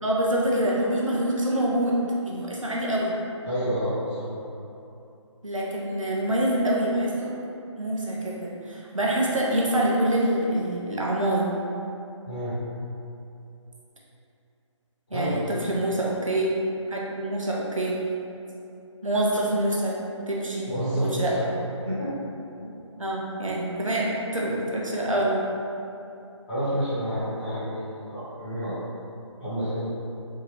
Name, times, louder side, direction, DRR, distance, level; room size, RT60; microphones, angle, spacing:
voice 1, 0.0-2.0 2.2-3.1 5.4-7.3 7.8-11.5 15.1-15.4 15.7-16.5 16.9-17.9 19.0-20.0 20.3-20.7 21.0-21.3 23.0-25.4, right 1 dB, 80° right, -4 dB, 0.8 m, -25 dB
voice 2, 3.4-4.3 12.2-12.5 15.1-15.5 20.6-21.5 21.8-22.1 22.6-22.7 26.5-27.8 28.1-28.7 29.4-30.0, equal, 25° left, -16 dB, 1.1 m, -29 dB
3.7 x 2.4 x 3.2 m, 2.7 s
figure-of-eight pair, 150°, 16 cm